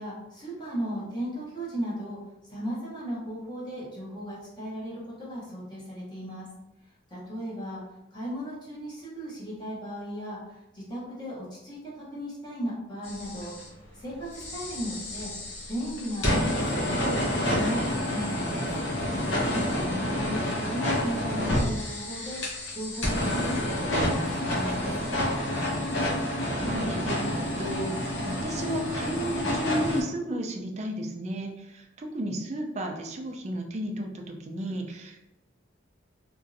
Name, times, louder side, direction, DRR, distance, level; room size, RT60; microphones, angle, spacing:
voice 1, 0.0-2.2 2.5-6.5 7.1-7.8 8.1-13.5 13.9-15.3 15.7-18.7 19.1-22.4 22.7-25.4, equal, 20° left, -7 dB, 0.8 m, -36 dB
sound 1, 13.0-13.7 14.3-30.0, left 1 dB, 75° left, 0.8 m, -29 dB
voice 2, 19.9-20.6 26.5-35.2, right 1 dB, 35° right, 2 dB, 0.4 m, -33 dB
3.0 x 2.6 x 2.6 m, 0.94 s
head